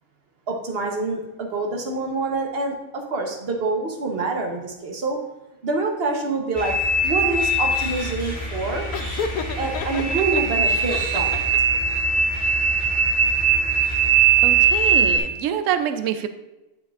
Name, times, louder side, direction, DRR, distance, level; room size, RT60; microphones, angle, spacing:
voice 1, 0.5-5.2 5.6-6.7 7.0-8.9 9.6-11.5, right 3 dB, 45° right, 2 dB, 1.2 m, -26 dB
sound 1, 6.5-15.2, right 5 dB, 5° right, 2.5 m, -21 dB
Laughter, 8.9-10.4 10.9-11.8, left 6 dB, 75° left, 1.1 m, -30 dB
voice 2, 14.4-16.3, right 9 dB, 70° right, 10 dB, 0.9 m, -26 dB
9.5 x 6.5 x 2.5 m, 0.97 s
omnidirectional pair, 1.6 m